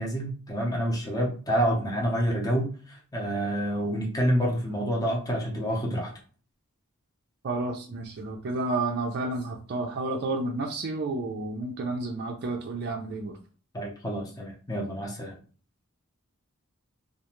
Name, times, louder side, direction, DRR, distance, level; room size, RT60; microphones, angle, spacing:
voice 1, 0.0-6.1 13.7-15.4, equal, 15° left, -1 dB, 0.7 m, -28 dB
voice 2, 7.4-13.3, right 2 dB, 50° right, 1 dB, 0.4 m, -31 dB
2.4 x 2.2 x 2.9 m, 0.39 s
head